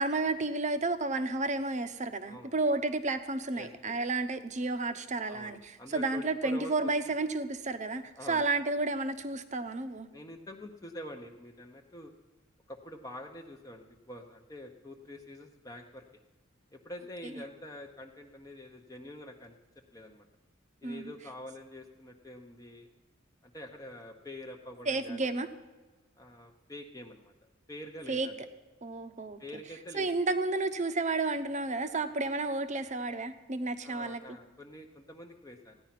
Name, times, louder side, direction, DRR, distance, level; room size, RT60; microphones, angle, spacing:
voice 1, 0.0-8.0 8.3-10.1 20.8-21.1 24.9-25.5 28.1-28.3 28.8-29.4 29.9-34.4, right 3 dB, 35° right, 10 dB, 0.8 m, -31 dB
voice 2, 2.3-2.6 3.5-4.0 5.3-6.7 7.1-7.2 8.2-8.5 10.1-12.1 12.7-16.2 16.7-19.5 19.9-20.2 20.8-22.9 23.4-25.4 26.2-27.3 27.7-28.4 29.4-30.1 33.8-35.8, left 1 dB, 15° left, 2 dB, 0.8 m, -46 dB
15.5 x 10.5 x 5.9 m, 1.2 s
head